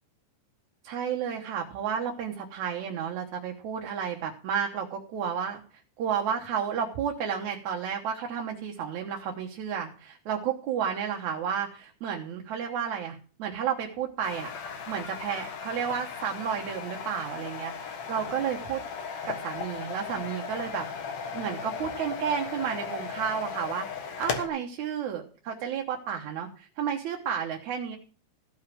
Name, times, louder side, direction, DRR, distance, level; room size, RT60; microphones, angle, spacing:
voice 1, 0.8-5.6 6.0-14.5 14.9-18.8 19.2-20.9 21.3-28.0, right 8 dB, 75° right, 1 dB, 2.5 m, -32 dB
sound 1, 14.2-24.5, left 6 dB, 65° left, 2.7 m, -36 dB
15.0 x 5.6 x 7.4 m, 0.41 s
omnidirectional pair, 3.5 m